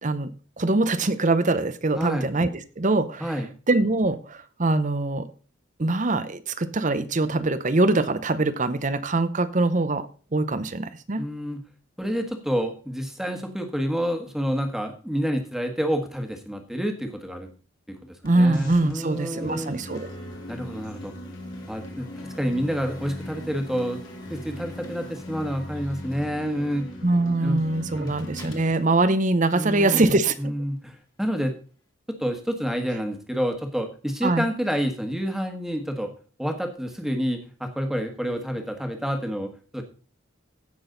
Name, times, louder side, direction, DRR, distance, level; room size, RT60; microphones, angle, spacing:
voice 1, 0.0-3.4 3.7-5.3 5.8-11.3 18.2-20.1 27.0-30.5 34.2-34.5, right 2 dB, 40° right, 13 dB, 0.7 m, -23 dB
voice 2, 11.2-11.6 12.0-17.5 17.9-18.0 18.3-19.8 20.5-21.1 21.7-24.0 24.3-26.9 27.4-27.6 28.0-28.1 29.5-31.5 32.2-36.1 36.4-39.8, equal, ahead, 4 dB, 1.5 m, -28 dB
sound 1, 18.2-30.2, left 2 dB, 20° left, 2.0 m, -50 dB
sound 2, 19.4-28.6, equal, 80° left, 2.3 m, -39 dB
16.0 x 6.2 x 3.9 m, 0.38 s
head